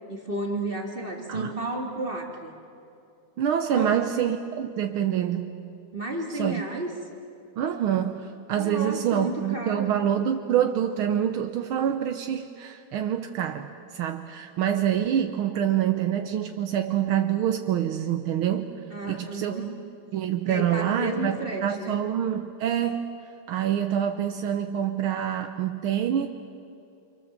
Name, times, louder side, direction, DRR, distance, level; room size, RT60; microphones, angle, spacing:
voice 1, 0.1-2.5 3.7-4.0 5.9-7.0 8.5-10.0 18.9-19.7 20.4-22.0, right 1 dB, 25° right, 0 dB, 2.4 m, -32 dB
voice 2, 3.4-5.5 6.3-6.6 7.6-18.7 19.1-19.7 20.1-23.1 23.5-26.3, right 10 dB, 75° right, 6 dB, 1.7 m, -26 dB
29.0 x 26.0 x 7.4 m, 2.6 s
omnidirectional pair, 2.4 m